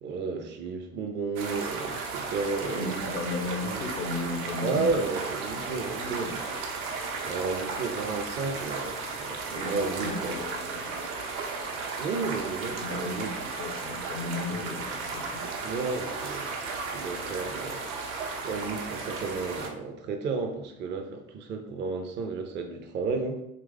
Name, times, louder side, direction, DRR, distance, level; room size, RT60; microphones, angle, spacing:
voice 1, 0.0-2.9 4.6-6.4 7.3-10.3 12.0-13.3 15.6-16.5 16.9-23.4, right 4 dB, 25° right, 4 dB, 0.5 m, -32 dB
sound 1, 1.4-19.7, right 4 dB, 65° right, 0.7 m, -35 dB
voice 2, 2.6-4.8 5.7-6.3 9.4-11.0 12.6-15.5, left 2 dB, 80° left, 2 dB, 0.8 m, -35 dB
3.0 x 2.4 x 3.4 m, 0.81 s
figure-of-eight pair, 70°, 45 cm